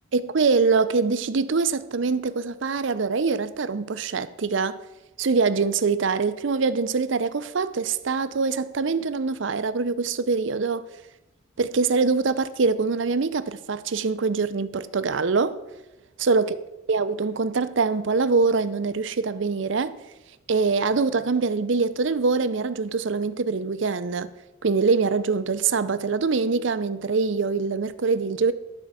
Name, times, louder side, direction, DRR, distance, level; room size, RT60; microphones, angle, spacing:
voice 1, 0.1-4.8 5.2-10.8 11.6-15.6 16.2-16.6 16.9-20.0 20.5-24.3 24.6-28.5, right 4 dB, 65° right, 0.6 m, -24 dB
12.0 x 4.6 x 7.4 m
head